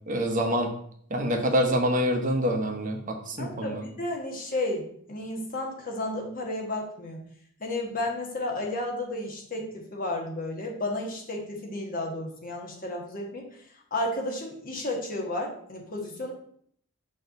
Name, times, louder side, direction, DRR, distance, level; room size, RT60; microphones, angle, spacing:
voice 1, 0.1-0.7 1.1-3.8, equal, 40° right, 3 dB, 0.9 m, -26 dB
voice 2, 3.4-7.2 7.6-13.5 13.9-16.3, left 1 dB, 40° left, 0 dB, 1.3 m, -32 dB
6.1 x 3.1 x 5.3 m, 0.64 s
head